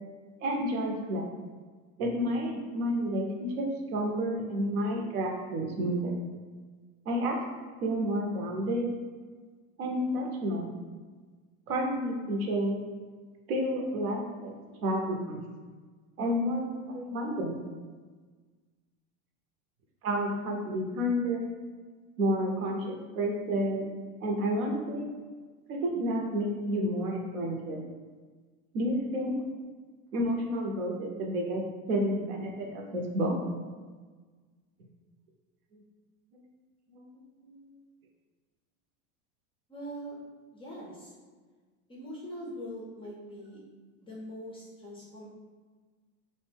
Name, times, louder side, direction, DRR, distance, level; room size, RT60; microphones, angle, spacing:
voice 1, 0.4-1.3 2.0-6.1 7.1-7.4 7.8-8.9 9.8-10.7 11.7-12.8 13.5-14.5 14.8-15.4 16.2-17.6 20.0-21.6 22.2-23.9 24.2-25.1 25.7-27.8 28.7-29.4 30.1-31.6 31.9-33.3 36.9-37.0 37.4-37.5, equal, 85° right, 0 dB, 0.7 m, -30 dB
voice 2, 39.7-40.2 40.5-41.1 41.9-43.6 44.0-45.3, equal, 15° left, -4 dB, 0.3 m, -42 dB
2.5 x 2.1 x 3.3 m, 1.4 s
supercardioid pair, 110°, 42 cm